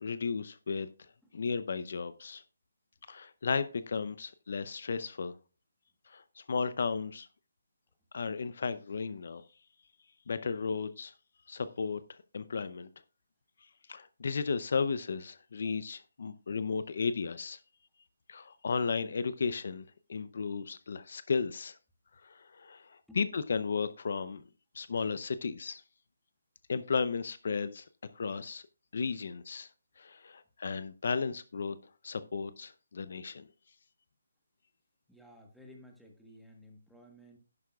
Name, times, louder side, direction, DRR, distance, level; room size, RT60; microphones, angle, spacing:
voice 1, 0.0-0.9 1.3-2.4 3.1-5.4 6.1-7.3 8.1-9.4 10.3-11.1 11.5-12.0 12.3-12.9 13.9-17.6 18.3-19.8 20.1-21.8 22.2-24.4 24.7-25.8 26.7-27.8 28.2-28.6 28.9-29.7 30.0-31.8 32.0-33.5, left 5 dB, 55° left, 0.6 m, -34 dB
voice 2, 35.1-37.4, equal, ahead, 1.3 m, -54 dB
11.5 x 10.5 x 2.4 m
hypercardioid pair, 170°, 0 cm